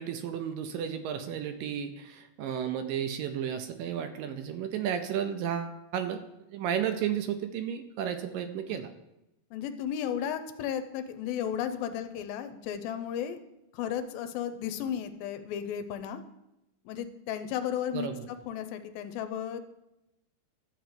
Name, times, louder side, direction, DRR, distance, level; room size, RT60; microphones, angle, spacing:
voice 1, 0.0-6.2 6.5-8.9 17.9-18.3, right 9 dB, 75° right, 8 dB, 2.2 m, -33 dB
voice 2, 8.3-8.8 9.5-13.4 13.7-16.2 16.9-19.6, left 9 dB, 80° left, 10 dB, 2.4 m, -34 dB
12.0 x 4.0 x 7.8 m, 0.90 s
omnidirectional pair, 4.2 m